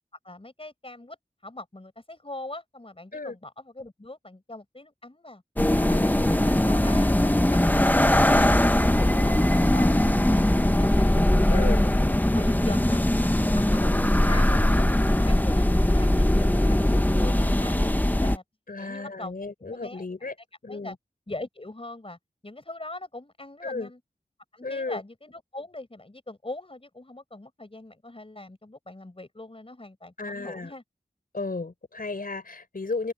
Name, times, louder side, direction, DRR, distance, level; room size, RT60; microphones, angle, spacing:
voice 1, 0.2-1.2 1.4-5.4 5.8-8.5 8.8-11.9 12.3-14.0 14.2-15.6 15.9-18.4 18.8-20.0 20.7-21.0 21.3-24.0 24.5-30.8, left 2 dB, 35° left, 5.7 m, -41 dB
sound 1, 5.6-18.4, left 1 dB, 10° left, 0.9 m, -21 dB
voice 2, 18.7-20.3 20.6-20.9 23.6-23.9 24.6-25.0 30.2-30.7 31.3-33.1, left 3 dB, 65° left, 4.5 m, -33 dB
wide cardioid pair, 60°, 16 cm